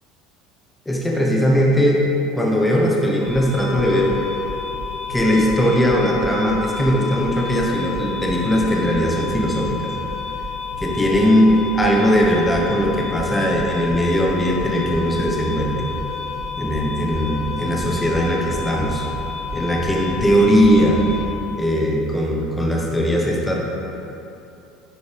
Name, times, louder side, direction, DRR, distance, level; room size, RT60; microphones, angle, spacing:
voice 1, 0.9-2.0 2.3-4.2 5.1-9.9 10.8-15.9 16.6-19.0 19.5-21.1 21.6-23.5, equal, 10° left, -2 dB, 1.1 m, -19 dB
sound 1, 3.2-21.3, left 4 dB, 40° left, 1.7 m, -30 dB
9.3 x 5.3 x 3.5 m, 2.9 s
supercardioid pair, 115°, 0 cm